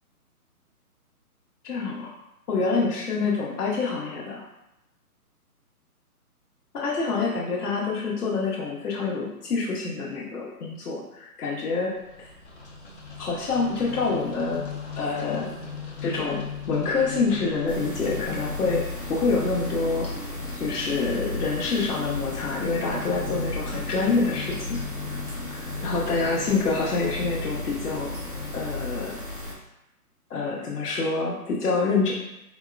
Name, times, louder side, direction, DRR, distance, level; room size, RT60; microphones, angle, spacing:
voice 1, 1.6-2.2 2.5-4.4 6.7-11.9 13.2-14.6 15.0-15.5 16.0-18.8 19.1-20.1 20.6-24.8 25.5-28.1 28.5-29.1 30.3-32.1, left 4 dB, 80° left, -5 dB, 0.8 m, -26 dB
sound 1, 11.9-28.5, left 5 dB, 45° left, 0.7 m, -38 dB
sound 2, 17.7-29.5, left 2 dB, 40° right, 0.4 m, -35 dB
4.2 x 2.0 x 2.3 m, 0.88 s
hypercardioid pair, 175°, 46 cm